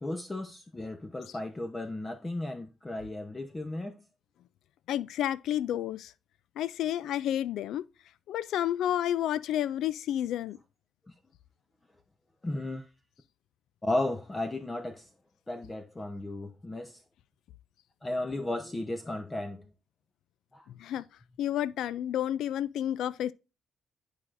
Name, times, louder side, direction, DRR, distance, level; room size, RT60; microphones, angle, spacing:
voice 1, 0.0-4.0 11.1-11.2 12.4-12.9 13.8-15.1 15.5-17.0 18.0-19.6 20.5-20.7, left 1 dB, 20° left, 0.8 m, -34 dB
voice 2, 4.9-6.1 6.6-7.9 8.3-10.6 20.8-21.1 21.4-23.3, left 11 dB, 80° left, 0.3 m, -30 dB
11.0 x 4.8 x 2.5 m
cardioid pair, 90°, 0 cm